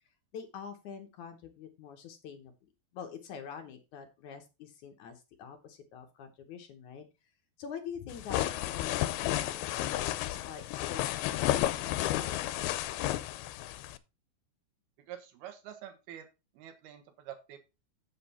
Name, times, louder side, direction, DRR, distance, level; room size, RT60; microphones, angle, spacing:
voice 1, 0.3-2.5 2.9-7.1 7.6-12.9, left 7 dB, 65° left, 6 dB, 2.0 m, -46 dB
sound 1, 8.1-14.0, left 14 dB, 85° left, 2.5 m, -32 dB
voice 2, 15.1-16.3 16.6-17.6, right 10 dB, 85° right, 8 dB, 3.2 m, -46 dB
7.7 x 7.6 x 4.2 m, 0.28 s
omnidirectional pair, 4.4 m